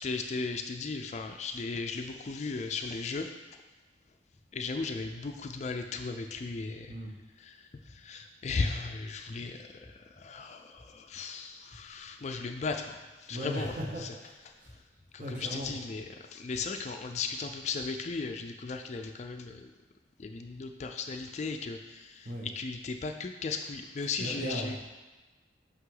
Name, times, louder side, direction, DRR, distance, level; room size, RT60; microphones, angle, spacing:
voice 1, 0.0-3.3 4.5-6.9 7.4-14.1 15.1-19.7 20.2-22.3 22.6-24.8, left 4 dB, 35° left, 5 dB, 0.3 m, -36 dB
sound 1, 4.3-4.4 5.0-5.4 5.9-6.4 6.9-7.3 7.8-8.3 8.8-9.2 9.8-10.2 10.8-11.2 11.7-12.1 12.7-13.1 13.6-14.1 14.6-15.1 15.6-16.0 16.5-16.9, left 1 dB, 20° left, 0.7 m, -55 dB
voice 2, 13.3-14.7 15.2-15.7 22.2-22.5 24.2-24.8, equal, 45° right, -1 dB, 1.1 m, -37 dB
5.8 x 5.7 x 3.8 m, 1.2 s
head